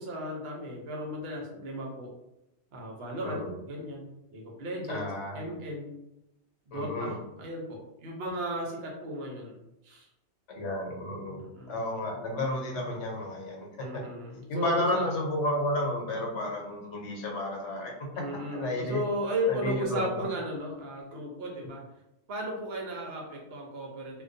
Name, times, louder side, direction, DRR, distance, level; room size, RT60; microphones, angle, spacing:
voice 1, 0.0-2.1 2.7-5.9 6.7-10.1 11.5-11.8 13.8-15.1 18.1-21.8 22.3-24.2, equal, 70° right, -1 dB, 0.8 m, -35 dB
voice 2, 4.9-5.5 6.7-7.1 10.5-11.4 11.7-13.7 13.9-14.0 14.5-17.9 18.5-19.0 19.5-20.2, left 1 dB, 85° left, -1 dB, 1.0 m, -31 dB
2.3 x 2.2 x 2.5 m, 0.89 s
omnidirectional pair, 1.2 m